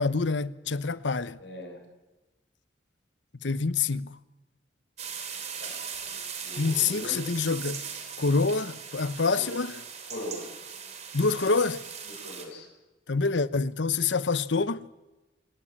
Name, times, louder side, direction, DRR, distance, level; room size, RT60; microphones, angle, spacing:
voice 1, 0.0-1.4 3.4-4.2 6.6-7.8 8.2-9.8 11.1-11.9 13.1-14.9, left 4 dB, 85° left, 0.9 m, -26 dB
voice 2, 1.4-1.8 5.6-5.8 6.4-7.2 9.4-9.5 10.1-10.5 12.2-12.7, left 1 dB, 65° left, 7.3 m, -39 dB
sound 1, 5.0-12.4, right 7 dB, 40° right, 3.6 m, -39 dB
26.0 x 18.5 x 8.8 m
head